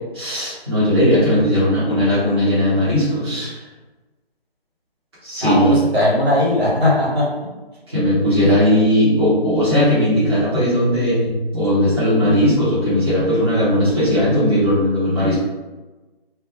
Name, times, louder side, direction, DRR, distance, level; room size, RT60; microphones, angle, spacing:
voice 1, 0.2-3.6 5.2-5.8 7.9-15.3, equal, 25° right, -11 dB, 0.8 m, -17 dB
voice 2, 5.4-7.3 8.2-8.5, left 1 dB, 80° right, -5 dB, 1.2 m, -18 dB
2.1 x 2.1 x 3.0 m, 1.2 s
figure-of-eight pair, 160°, 31 cm